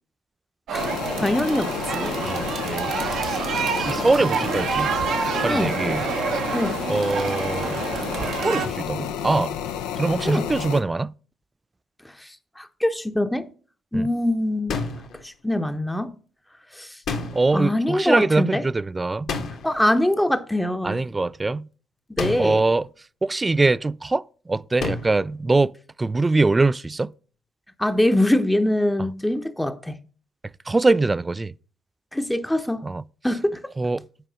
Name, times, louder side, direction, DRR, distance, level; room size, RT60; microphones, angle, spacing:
sound 1, 0.7-8.7, right 6 dB, 65° right, 0.9 m, -27 dB
sound 2, 0.8-10.8, left 8 dB, 80° left, 0.6 m, -31 dB
voice 1, 1.2-2.3 5.5-5.7 6.5-6.8 10.2-10.5 12.2-13.5 13.9-14.8 15.2-16.1 16.7-17.0 17.5-18.6 19.6-21.0 22.2-22.6 27.8-29.9 32.1-32.9 33.2-33.7, left 1 dB, 10° left, 0.8 m, -23 dB
voice 2, 2.2-3.0 3.7-4.9 5.4-6.0 6.9-7.8 8.4-9.6 10.0-11.1 13.9-14.1 17.3-19.3 20.8-21.7 22.4-22.9 23.2-27.1 30.7-31.5 32.8-33.0 33.8-34.0, right 3 dB, 25° right, 0.3 m, -23 dB
sound 3, 14.7-15.2 17.1-17.7 19.3-19.8 22.2-22.7 24.8-25.3, left 4 dB, 65° left, 1.5 m, -30 dB
7.6 x 4.6 x 5.0 m
hypercardioid pair, 50°, 0 cm